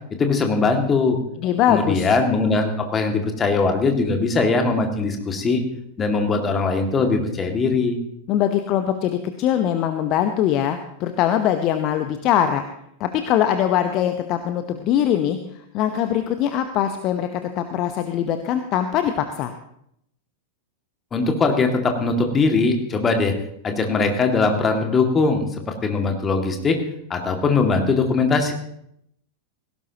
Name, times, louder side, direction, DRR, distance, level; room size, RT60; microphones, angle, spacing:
voice 1, 0.2-1.2 1.7-5.6 6.0-8.0 21.1-23.3 23.6-26.8 27.1-28.5, left 4 dB, 20° left, 4 dB, 2.2 m, -21 dB
voice 2, 1.4-2.1 8.3-12.6 13.0-15.4 15.7-19.5, left 10 dB, 40° left, 8 dB, 0.9 m, -22 dB
17.5 x 17.0 x 3.0 m, 0.73 s
figure-of-eight pair, 90°, 0 cm